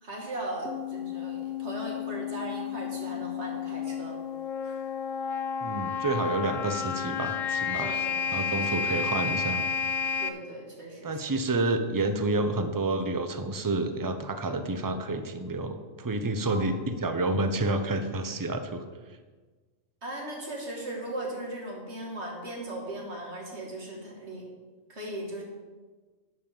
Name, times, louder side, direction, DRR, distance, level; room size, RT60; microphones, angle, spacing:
voice 1, 0.0-4.2 4.6-4.9 6.3-6.4 7.8-8.3 8.8-8.9 10.2-11.2 16.5-16.7 20.0-24.5 24.9-25.4, right 1 dB, 55° right, -1 dB, 2.5 m, -38 dB
sound 1, 0.7-10.3, left 6 dB, 80° left, 1.1 m, -31 dB
voice 2, 5.6-7.9 8.3-9.6 11.0-18.9, right 2 dB, 20° right, 7 dB, 0.6 m, -29 dB
11.0 x 5.4 x 7.1 m, 1.4 s
omnidirectional pair, 1.4 m